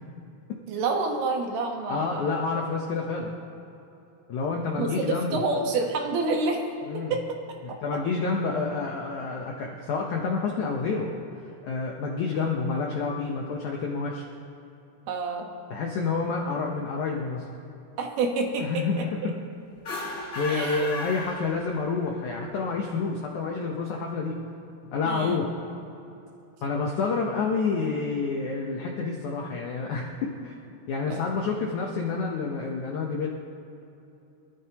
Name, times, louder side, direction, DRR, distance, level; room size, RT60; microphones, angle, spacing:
voice 1, 0.7-2.4 4.8-6.6 7.1-7.4 15.1-15.5 18.0-19.3 20.5-20.9 25.0-25.4 31.1-31.2, right 3 dB, 75° right, 2 dB, 3.2 m, -28 dB
voice 2, 1.9-3.3 4.3-5.4 6.9-7.1 7.6-11.1 11.6-14.2 15.7-17.4 18.6-19.4 20.1-24.5 24.9-25.7 26.6-30.5 30.9-33.3, left 4 dB, 75° left, 0 dB, 1.7 m, -29 dB
sound 1, 19.7-22.1, left 2 dB, 35° left, 3.2 m, -35 dB
27.0 x 13.5 x 3.0 m, 2.8 s
omnidirectional pair, 4.9 m